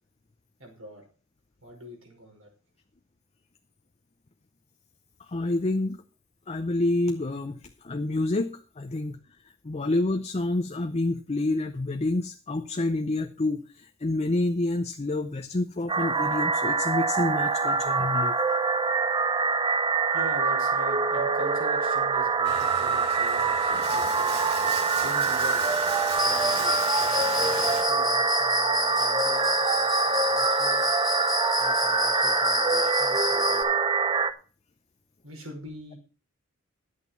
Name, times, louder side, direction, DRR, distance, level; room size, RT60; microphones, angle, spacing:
voice 1, 0.6-1.0 1.6-2.5 20.1-25.6 26.2-30.9 31.6-33.6 35.2-36.0, equal, 80° right, 1 dB, 5.1 m, -43 dB
voice 2, 5.2-6.0 6.5-9.2 9.6-18.3, left 2 dB, 30° left, 6 dB, 0.6 m, -28 dB
sound 1, 15.9-34.3, right 4 dB, 20° right, 0.6 m, -25 dB
Bathtub (filling or washing), 22.4-27.8, right 4 dB, 55° right, 3.7 m, -37 dB
Cricket, 26.2-33.6, left 1 dB, ahead, 1.5 m, -30 dB
11.0 x 8.4 x 5.6 m, 0.37 s
head